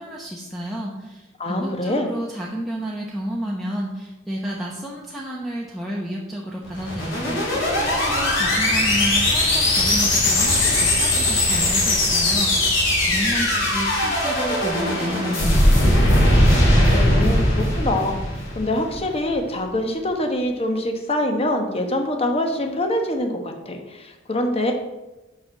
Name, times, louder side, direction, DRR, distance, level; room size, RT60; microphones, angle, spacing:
voice 1, 0.0-16.2, equal, ahead, -5 dB, 0.9 m, -31 dB
voice 2, 1.4-2.1 16.9-24.7, left 1 dB, 30° left, 4 dB, 1.0 m, -24 dB
sound 1, 6.6-19.0, left 1 dB, 65° left, 3.1 m, -19 dB
6.0 x 5.9 x 6.2 m, 1.1 s
head